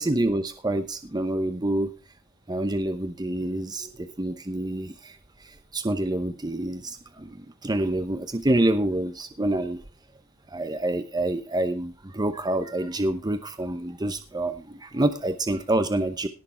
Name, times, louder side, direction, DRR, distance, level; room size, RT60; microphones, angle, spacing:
voice 1, 0.0-1.9 2.5-9.8 10.5-16.3, right 1 dB, 20° right, 9 dB, 0.8 m, -27 dB
18.0 x 6.7 x 4.3 m, 0.34 s
head